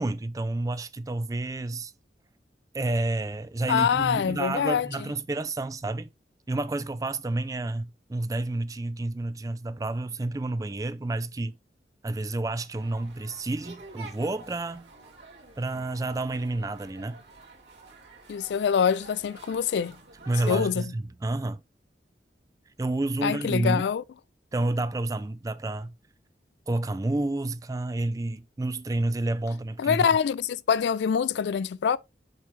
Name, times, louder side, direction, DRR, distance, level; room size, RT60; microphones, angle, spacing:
voice 1, 0.0-1.9 2.7-6.1 6.5-11.6 12.0-14.9 15.6-17.2 20.3-21.6 22.8-23.8 24.5-25.9 26.7-30.0, right 2 dB, 20° right, 0.3 m, -30 dB
voice 2, 3.7-4.9 18.3-20.0 20.5-20.9 23.2-24.0 29.8-32.0, left 7 dB, 75° left, 0.3 m, -25 dB
sound 1, 12.7-20.7, right 3 dB, 80° right, 2.5 m, -48 dB
6.8 x 4.5 x 3.2 m
head